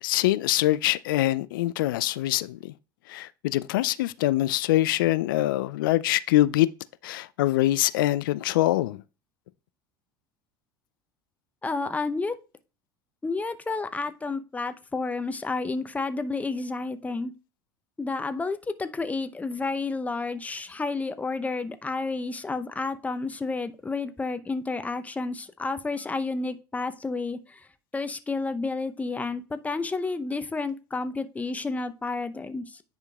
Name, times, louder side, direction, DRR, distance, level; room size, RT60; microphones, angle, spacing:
voice 1, 0.0-2.7 3.1-6.7 7.0-9.0, left 15 dB, 75° left, 0.4 m, -24 dB
voice 2, 11.6-12.4 13.2-17.3 18.0-27.7 27.9-32.8, left 3 dB, 15° left, 0.6 m, -31 dB
9.7 x 5.2 x 2.3 m
hypercardioid pair, 75°, 11 cm